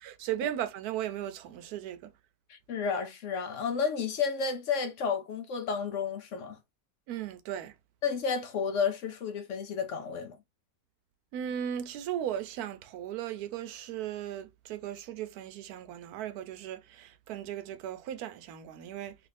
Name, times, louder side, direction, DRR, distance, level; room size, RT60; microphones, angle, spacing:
voice 1, 0.0-2.1 7.1-7.7 11.3-19.2, right 10 dB, 85° right, 1.1 m, -37 dB
voice 2, 2.5-6.6 8.0-10.4, left 6 dB, 65° left, 0.9 m, -31 dB
3.1 x 2.5 x 3.2 m
omnidirectional pair, 1.6 m